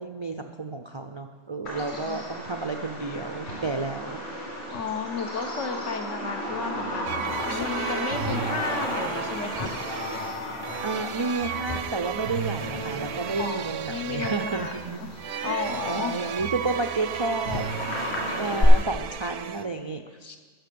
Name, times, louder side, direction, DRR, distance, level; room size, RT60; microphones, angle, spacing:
voice 1, 0.0-4.2 10.8-15.0 15.4-17.7 18.4-20.4, right 3 dB, 45° right, 5 dB, 0.3 m, -31 dB
Bird vocalization bird call bird song, 1.6-18.6, equal, 60° left, 4.1 m, -36 dB
voice 2, 4.7-9.7 13.4-15.1 15.4-16.2, left 5 dB, 75° left, 4 dB, 1.4 m, -33 dB
sound 1, 7.1-19.7, right 9 dB, 65° right, 0.8 m, -34 dB
sound 2, 7.2-13.6 17.4-18.8, left 4 dB, 35° left, 0.5 m, -36 dB
13.5 x 7.0 x 6.8 m, 1.5 s
omnidirectional pair, 1.3 m